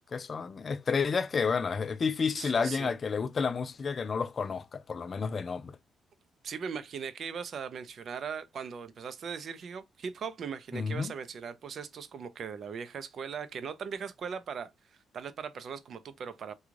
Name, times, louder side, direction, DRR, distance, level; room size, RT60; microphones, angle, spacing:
voice 1, 0.1-5.8 10.7-11.1, left 5 dB, 40° left, 0.3 m, -30 dB
voice 2, 2.4-2.9 6.4-14.7 15.1-16.5, right 6 dB, 55° right, 0.5 m, -39 dB
3.1 x 2.3 x 3.6 m
cardioid pair, 90°, 0 cm